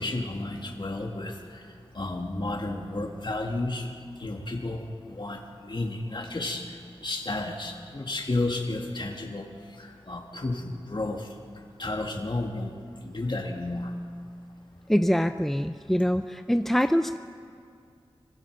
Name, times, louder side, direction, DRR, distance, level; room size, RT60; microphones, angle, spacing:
voice 1, 0.0-1.6 1.9-3.9 4.2-6.7 7.0-9.5 9.8-11.3 11.8-12.7 13.0-14.0, left 2 dB, 50° left, 1 dB, 3.1 m, -32 dB
voice 2, 14.9-17.2, equal, 5° left, 8 dB, 0.8 m, -24 dB
26.0 x 24.5 x 5.3 m, 2.2 s
cardioid pair, 45°, 10 cm